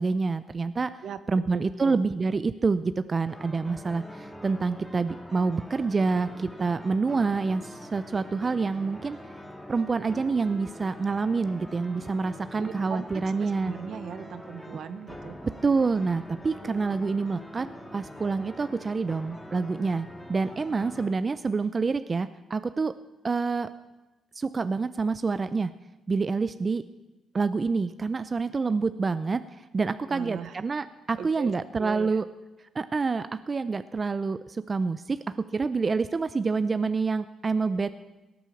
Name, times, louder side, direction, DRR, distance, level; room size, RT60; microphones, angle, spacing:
voice 1, 0.0-1.0 1.3-9.2 9.7-13.7 14.7-14.8 15.4-22.9 23.2-23.7 24.3-25.7 26.1-26.8 27.3-32.3 32.7-35.2 35.5-37.9, right 4 dB, 30° right, 12 dB, 0.5 m, -27 dB
voice 2, 1.5-2.0 12.3-15.4 30.1-30.6 31.2-31.5 31.8-32.2, right 8 dB, 65° right, 13 dB, 0.9 m, -39 dB
sound 1, 3.3-21.1, left 1 dB, 5° left, 1.8 m, -44 dB
17.5 x 9.3 x 7.2 m, 1.1 s
cardioid pair, 90°, 0 cm